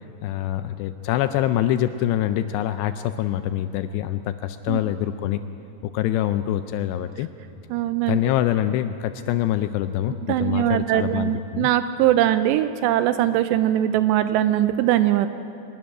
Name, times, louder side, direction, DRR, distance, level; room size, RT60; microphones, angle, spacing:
voice 1, 0.2-5.4 5.8-7.3 8.1-11.7, left 12 dB, 80° left, 11 dB, 2.5 m, -25 dB
voice 2, 7.7-8.2 10.3-15.3, right 12 dB, 80° right, 11 dB, 2.6 m, -21 dB
23.0 x 12.5 x 9.9 m, 2.9 s
omnidirectional pair, 5.3 m